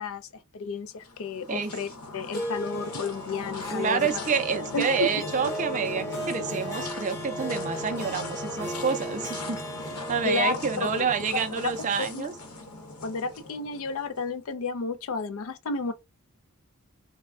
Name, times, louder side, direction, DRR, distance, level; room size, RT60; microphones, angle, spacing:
voice 1, 0.0-4.2 4.7-5.2 10.2-11.0 11.6-12.3 13.0-15.9, left 4 dB, 65° left, 0.4 m, -32 dB
sound 1, 1.0-14.3, left 2 dB, 85° left, 0.9 m, -39 dB
Harp, 2.3-12.9, equal, 10° left, 0.7 m, -38 dB
voice 2, 3.7-9.6 10.1-12.3, right 6 dB, 35° right, 0.4 m, -28 dB
3.3 x 2.1 x 2.3 m
head